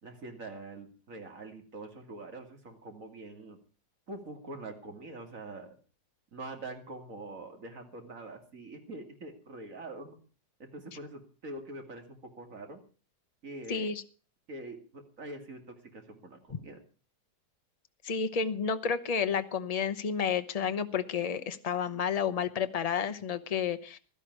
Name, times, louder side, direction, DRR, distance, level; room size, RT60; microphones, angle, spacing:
voice 1, 0.0-3.6 4.1-5.8 6.3-10.1 10.6-12.8 13.4-13.9 14.5-16.8, right 2 dB, 55° right, 4 dB, 2.9 m, -44 dB
voice 2, 13.7-14.0 18.0-24.0, left 6 dB, 30° left, 11 dB, 0.8 m, -31 dB
16.0 x 12.5 x 4.6 m, 0.38 s
omnidirectional pair, 1.7 m